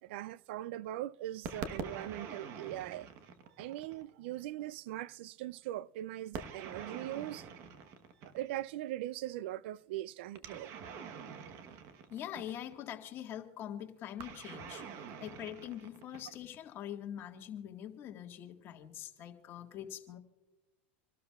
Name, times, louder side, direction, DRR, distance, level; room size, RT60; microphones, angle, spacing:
voice 1, 0.0-3.1 3.6-7.5 8.2-10.8, right 14 dB, 70° right, 0.3 m, -40 dB
sound 1, 1.4-4.1 6.3-8.7 10.4-12.8 14.2-16.6, right 6 dB, 50° right, 1.1 m, -45 dB
voice 2, 12.1-20.2, left 10 dB, 40° left, 1.7 m, -44 dB
27.0 x 12.5 x 2.4 m
supercardioid pair, 125°, 6 cm